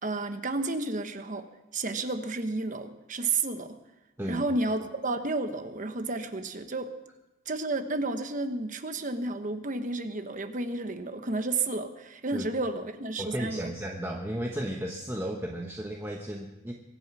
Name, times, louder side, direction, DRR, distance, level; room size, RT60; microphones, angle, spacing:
voice 1, 0.0-1.5 1.7-3.8 4.3-6.9 7.5-13.7, right 2 dB, 40° right, 8 dB, 1.1 m, -31 dB
voice 2, 13.2-16.7, right 1 dB, 10° right, 1 dB, 1.1 m, -34 dB
23.5 x 8.9 x 6.1 m, 0.98 s
head